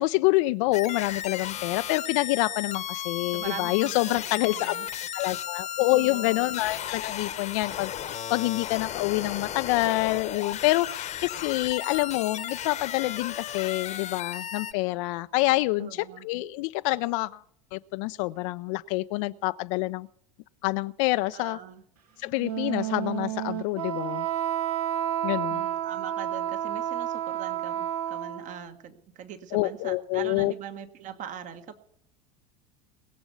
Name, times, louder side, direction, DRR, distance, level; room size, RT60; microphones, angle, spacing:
voice 1, 0.0-4.7 5.1-17.4 17.7-20.1 20.6-21.6 22.2-24.3 25.2-25.6 29.5-30.5, left 20 dB, 55° left, 0.4 m, -27 dB
sound 1, 0.7-14.7, left 10 dB, 35° left, 1.0 m, -35 dB
voice 2, 3.3-4.9 5.9-6.6 15.8-16.3 21.3-21.8 25.5-31.8, right 9 dB, 40° right, 1.4 m, -42 dB
Wind instrument woodwind instrument, 22.4-28.6, right 11 dB, 70° right, 1.4 m, -30 dB
21.0 x 7.0 x 6.8 m
figure-of-eight pair, 75°, 20 cm